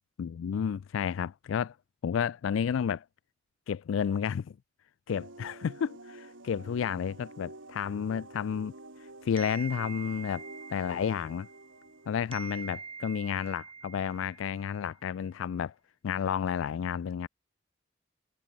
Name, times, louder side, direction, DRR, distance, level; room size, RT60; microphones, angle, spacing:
voice 1, 0.2-1.8 2.0-3.0 3.7-4.6 5.1-8.7 9.2-11.5 12.1-15.7 16.0-17.3, left 7 dB, 85° left, 0.3 m, -31 dB
sound 1, 5.1-13.4, right 2 dB, 85° right, 3.5 m, -50 dB
sound 2, 9.4-12.0 12.3-14.9, right 6 dB, 30° right, 3.6 m, -45 dB
head